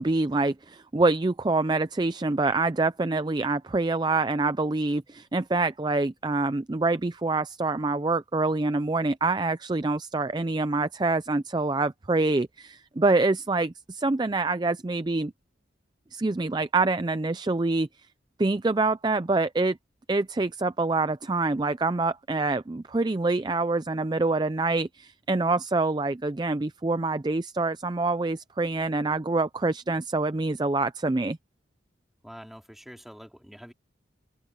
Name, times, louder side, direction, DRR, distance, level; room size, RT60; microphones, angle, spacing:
voice 1, 0.0-15.3 16.1-17.9 18.4-19.8 20.1-31.4, right 3 dB, 20° right, 0.4 m, -26 dB
voice 2, 32.2-33.7, equal, ahead, 3.4 m, -46 dB
open air
head